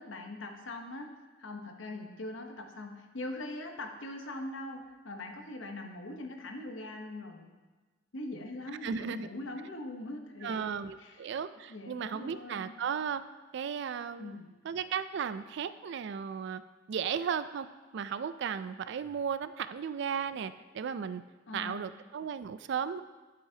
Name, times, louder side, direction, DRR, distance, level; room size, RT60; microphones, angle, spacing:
voice 1, 0.0-7.6 8.1-10.7 11.0-11.3 11.7-12.8 14.2-14.6 21.5-21.9, left 2 dB, 70° left, 4 dB, 1.0 m, -42 dB
voice 2, 8.8-9.3 10.4-13.2 13.5-14.4 14.6-16.6 16.9-17.7 17.9-21.2 21.5-23.0, right 7 dB, 60° right, 13 dB, 0.3 m, -35 dB
11.5 x 7.8 x 2.8 m, 1.3 s
head